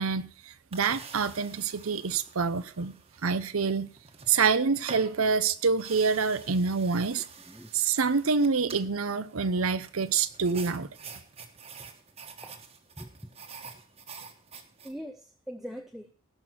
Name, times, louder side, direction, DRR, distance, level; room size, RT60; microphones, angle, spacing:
voice 1, 0.0-2.9 3.2-3.9 4.3-7.3 7.7-10.9, right 5 dB, 75° right, 0.7 m, -26 dB
sound 1, 0.7-14.9, right 5 dB, 25° right, 1.4 m, -48 dB
voice 2, 13.0-13.3 13.7-13.8 14.8-16.1, equal, ahead, 0.6 m, -42 dB
17.0 x 6.0 x 6.2 m
head